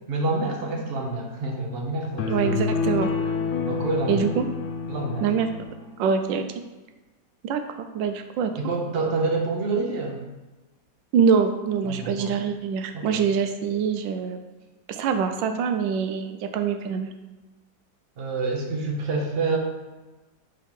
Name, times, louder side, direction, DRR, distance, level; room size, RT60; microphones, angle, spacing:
voice 1, 0.1-2.6 3.6-4.3 4.9-5.3 8.6-10.2 11.8-12.3 12.9-13.3 18.2-19.6, right 3 dB, 40° right, 1 dB, 0.9 m, -27 dB
sound 1, 2.2-5.7, left 5 dB, 75° left, 1.2 m, -28 dB
voice 2, 2.3-3.1 4.1-4.5 5.2-5.5 6.0-6.4 7.4-7.6 7.9-8.5 11.1-14.4 14.9-17.1, right 6 dB, 85° right, 7 dB, 1.3 m, -24 dB
5.5 x 3.7 x 5.2 m, 1.2 s
omnidirectional pair, 2.0 m